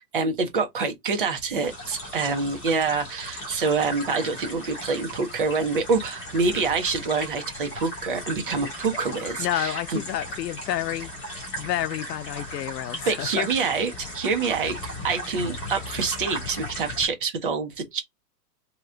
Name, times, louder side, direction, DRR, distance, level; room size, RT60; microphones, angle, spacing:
voice 1, 0.0-10.0 13.1-18.0, right 4 dB, 35° right, 0.7 m, -26 dB
sound 1, 1.6-17.1, equal, 15° left, 0.9 m, -37 dB
voice 2, 9.4-11.1 11.6-13.5, left 12 dB, 80° left, 0.6 m, -29 dB
2.9 x 2.2 x 3.7 m
hypercardioid pair, 180°, 48 cm